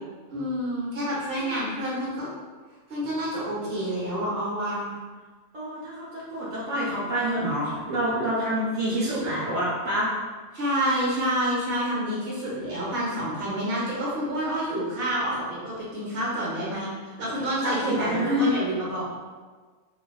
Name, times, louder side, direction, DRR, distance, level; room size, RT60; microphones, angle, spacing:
voice 1, 0.3-2.3 2.9-4.9 10.5-15.4 15.6-16.9 17.2-19.1, equal, 50° right, -7 dB, 1.3 m, -28 dB
voice 2, 1.4-1.7 5.5-10.1 17.6-18.4, right 1 dB, 75° right, -8 dB, 1.2 m, -27 dB
4.0 x 2.9 x 2.3 m, 1.4 s
omnidirectional pair, 1.3 m